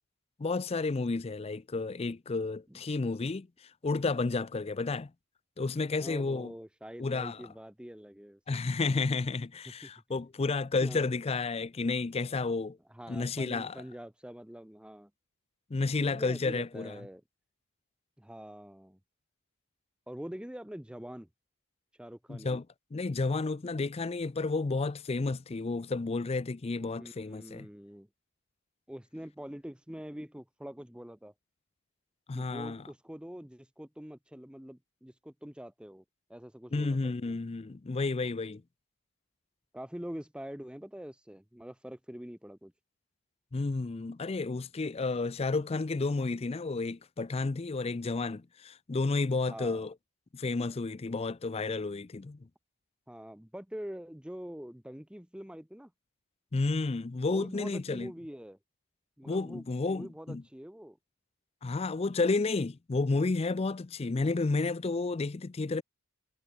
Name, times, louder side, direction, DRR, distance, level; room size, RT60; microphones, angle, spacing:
voice 1, 0.4-5.1 5.6-6.5 7.0-7.4 8.5-12.8 13.1-13.8 15.7-17.0 22.3-22.6 22.9-27.7 32.3-32.8 36.7-38.6 43.5-49.9 50.3-52.4 56.5-58.1 59.3-60.4 61.6-65.8, left 3 dB, 25° left, 0.4 m, -31 dB
voice 2, 6.0-8.6 9.8-9.9 10.8-11.1 12.9-15.1 16.0-17.2 18.2-19.0 20.1-21.3 22.0-22.6 27.0-28.1 28.9-31.3 32.3-36.0 36.3-37.4 39.7-42.7 49.5-49.9 53.1-55.9 57.2-58.6 59.2-61.0, equal, 5° right, 0.8 m, -45 dB
head